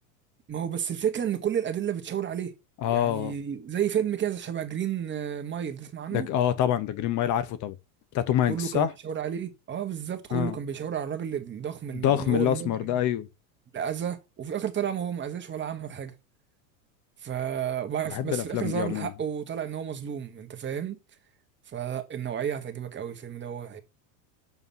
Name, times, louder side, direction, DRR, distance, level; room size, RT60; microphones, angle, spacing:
voice 1, 0.5-2.5 2.9-6.3 8.5-13.0 13.7-16.1 17.2-21.0 21.7-23.8, right 9 dB, 25° right, 1.6 m, -31 dB
voice 2, 2.8-3.3 6.1-7.7 8.1-8.9 10.3-10.5 12.0-13.3 18.1-19.1, left 11 dB, 40° left, 1.0 m, -26 dB
7.1 x 5.6 x 5.7 m
supercardioid pair, 115°, 44 cm